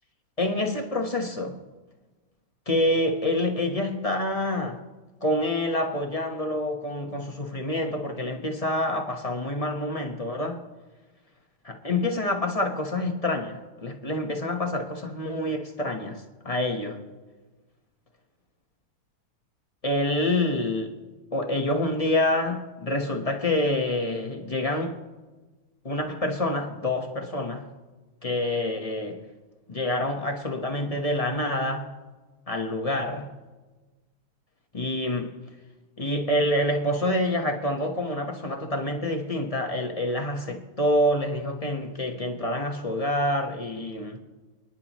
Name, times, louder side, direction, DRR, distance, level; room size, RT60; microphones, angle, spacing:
voice 1, 0.4-1.6 2.7-4.8 5.2-10.6 11.6-17.0 19.8-21.0 21.3-25.0 25.8-27.7 28.2-29.2 29.7-31.9 32.5-33.3 34.7-35.4 36.0-44.2, left 1 dB, 25° left, 0.9 m, -27 dB
27.5 x 10.5 x 3.1 m
omnidirectional pair, 2.4 m